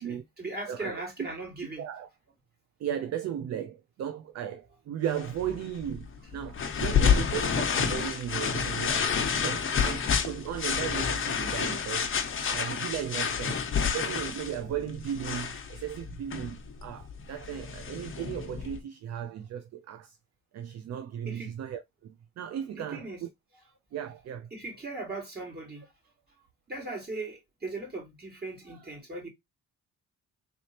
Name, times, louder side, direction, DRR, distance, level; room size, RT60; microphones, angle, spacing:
voice 1, 0.0-1.8 21.2-21.5 22.7-23.2 24.5-25.9 26.7-29.3, right 2 dB, 30° right, 3.0 m, -38 dB
voice 2, 0.6-1.0 1.8-2.1 2.8-12.1 12.4-20.2 20.5-23.3 23.9-24.5, right 9 dB, 60° right, 0.6 m, -36 dB
sound 1, 5.1-18.8, left 6 dB, 40° left, 1.0 m, -29 dB
4.0 x 3.4 x 2.8 m
cardioid pair, 90°, 30 cm